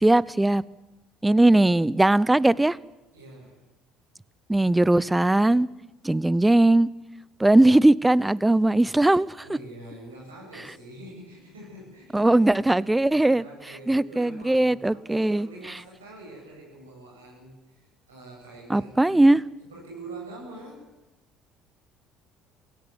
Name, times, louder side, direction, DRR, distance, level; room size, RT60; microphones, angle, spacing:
voice 1, 0.0-0.6 1.2-2.8 4.5-5.7 6.0-6.9 7.4-9.3 12.1-13.4 13.9-15.5 18.7-19.4, right 2 dB, 10° right, 22 dB, 0.7 m, -19 dB
voice 2, 3.1-3.6 9.4-12.5 12.8-12.9 13.2-19.4 19.6-20.9, right 2 dB, 90° right, -2 dB, 7.8 m, -45 dB
17.5 x 16.5 x 9.5 m, 1.0 s
hypercardioid pair, 60°, 0 cm